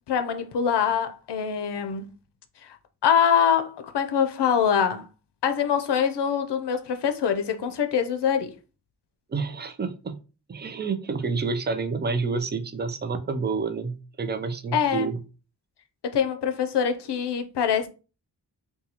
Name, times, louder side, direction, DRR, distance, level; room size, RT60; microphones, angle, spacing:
voice 1, 0.1-2.1 2.6-2.7 3.0-5.0 5.4-8.5 14.7-15.1 16.0-17.9, left 7 dB, 75° left, 0.6 m, -24 dB
voice 2, 9.3-10.2 10.5-15.2, right 4 dB, 25° right, 0.4 m, -29 dB
3.9 x 2.3 x 2.8 m
wide cardioid pair, 110°, 41 cm